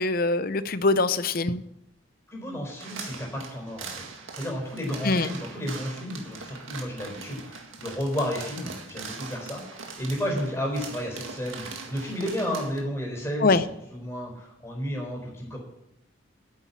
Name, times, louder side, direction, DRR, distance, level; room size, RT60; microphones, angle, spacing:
voice 1, 0.0-1.6 5.0-5.3 13.4-13.6, left 3 dB, 45° left, 14 dB, 0.6 m, -23 dB
voice 2, 2.3-4.0 4.3-15.6, equal, 15° left, -1 dB, 4.3 m, -32 dB
sound 1, 2.8-12.8, right 4 dB, 85° right, 2.0 m, -41 dB
9.8 x 8.6 x 8.4 m, 0.83 s
head